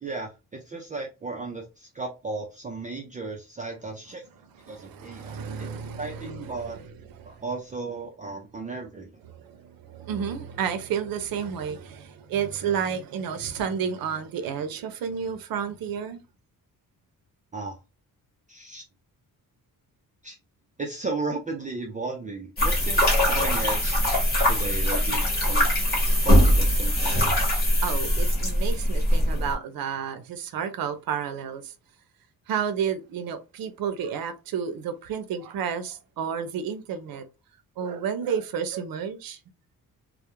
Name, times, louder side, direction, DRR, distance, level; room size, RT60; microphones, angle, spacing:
voice 1, 0.0-4.3 4.7-5.7 6.0-6.8 7.2-9.1 17.5-17.8 18.5-18.8 20.2-20.4 20.8-25.7 26.2-27.2, right 3 dB, 25° right, 0.3 m, -35 dB
voice 2, 4.6-7.3 9.3-16.2 27.8-31.7 32.5-37.2 37.8-39.4, right 7 dB, 75° right, 0.6 m, -31 dB
sound 1, 22.6-29.5, equal, 25° left, 1.0 m, -22 dB
2.3 x 2.0 x 2.9 m
wide cardioid pair, 160°, 35 cm